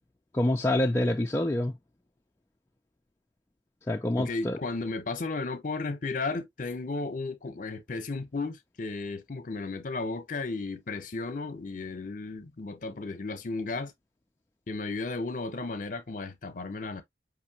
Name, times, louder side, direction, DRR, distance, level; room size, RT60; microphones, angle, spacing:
voice 1, 0.3-1.7 3.9-4.6, left 1 dB, 15° left, 0.3 m, -26 dB
voice 2, 4.2-13.9 14.7-17.0, left 3 dB, 45° left, 0.7 m, -34 dB
5.0 x 2.8 x 2.7 m
head